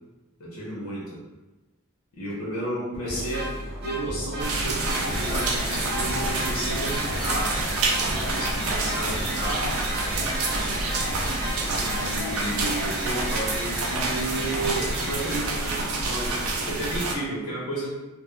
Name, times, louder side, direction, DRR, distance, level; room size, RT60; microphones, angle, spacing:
voice 1, 0.4-1.2 2.1-3.5 3.8-7.7 8.3-9.7 11.7-15.8 16.0-17.9, right 1 dB, 85° left, -5 dB, 0.8 m, -32 dB
sound 1, 2.3-2.4 2.9-12.0, equal, 45° right, 0.7 m, -34 dB
sound 2, 4.4-17.1, right 2 dB, 85° right, 0.4 m, -28 dB
sound 3, 4.9-15.5, equal, 5° left, 0.6 m, -34 dB
2.3 x 2.1 x 2.9 m, 1.1 s
head